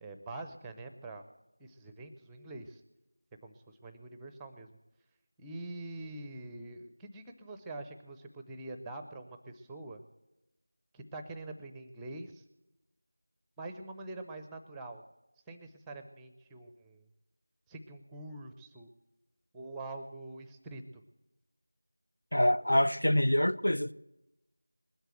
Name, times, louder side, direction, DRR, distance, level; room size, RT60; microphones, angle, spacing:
voice 1, 0.0-1.3 1.6-2.8 3.4-4.8 5.4-10.0 10.9-12.4 13.6-15.0 15.5-17.1 17.7-18.9 19.5-21.0, right 2 dB, 5° right, 0.5 m, -45 dB
voice 2, 22.3-23.9, left 1 dB, 75° left, 0.6 m, -26 dB
20.5 x 8.0 x 7.9 m
figure-of-eight pair, 170°, 0 cm